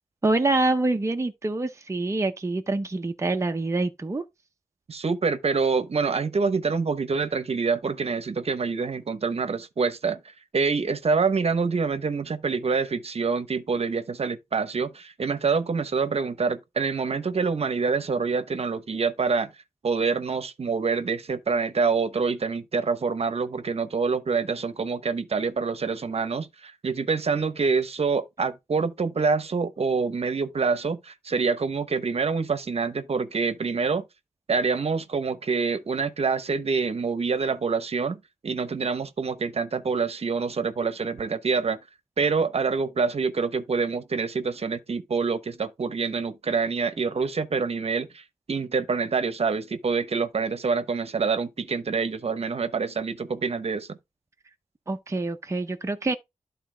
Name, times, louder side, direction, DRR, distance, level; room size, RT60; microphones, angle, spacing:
voice 1, 0.2-4.2 54.9-56.2, right 2 dB, 25° right, 0.7 m, -26 dB
voice 2, 4.9-10.2 10.5-19.5 19.8-34.0 34.5-41.8 42.2-54.0, right 5 dB, 50° right, 0.9 m, -26 dB
11.5 x 4.0 x 3.8 m
wide cardioid pair, 90°, 13 cm